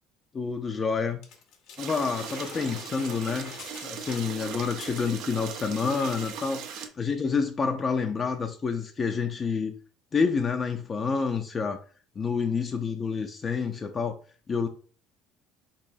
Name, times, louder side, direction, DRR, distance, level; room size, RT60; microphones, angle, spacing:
voice 1, 0.3-1.2 1.8-3.5 3.8-9.7 10.1-11.8 12.2-14.1 14.5-14.7, left 5 dB, 35° left, 4 dB, 0.4 m, -28 dB
sound 1, 1.2-5.4 5.7-5.9 6.2-6.6 7.3-7.4, left 6 dB, 65° left, 0.8 m, -46 dB
sound 2, 1.8-6.9, right 7 dB, 70° right, 0.5 m, -39 dB
3.6 x 3.1 x 2.6 m, 0.42 s
supercardioid pair, 90°, 0 cm